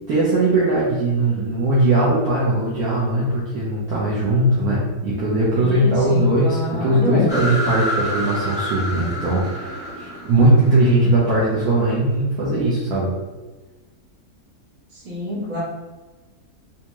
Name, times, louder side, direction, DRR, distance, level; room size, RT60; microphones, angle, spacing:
voice 1, 0.1-13.1, right 1 dB, 70° right, -8 dB, 1.2 m, -19 dB
voice 2, 5.6-7.3 15.0-15.6, left 1 dB, 50° right, -8 dB, 1.7 m, -26 dB
sound 1, 7.3-11.8, equal, 5° right, 0.4 m, -28 dB
3.4 x 2.6 x 3.0 m, 1.2 s
omnidirectional pair, 1.7 m